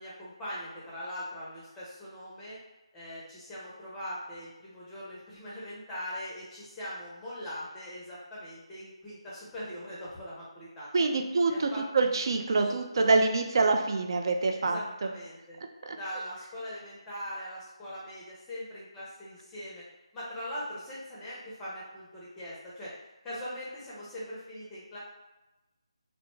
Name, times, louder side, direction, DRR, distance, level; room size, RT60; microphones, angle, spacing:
voice 1, 0.0-2.6 2.9-10.9 11.5-11.8 12.6-13.1 14.6-15.6 15.9-19.8 20.1-22.9 23.2-25.0, equal, 10° left, -8 dB, 0.5 m, -41 dB
voice 2, 10.9-15.1 15.9-16.0, right 3 dB, 50° right, 4 dB, 0.3 m, -26 dB
2.5 x 2.1 x 3.0 m, 1.0 s
figure-of-eight pair, 155°, 3 cm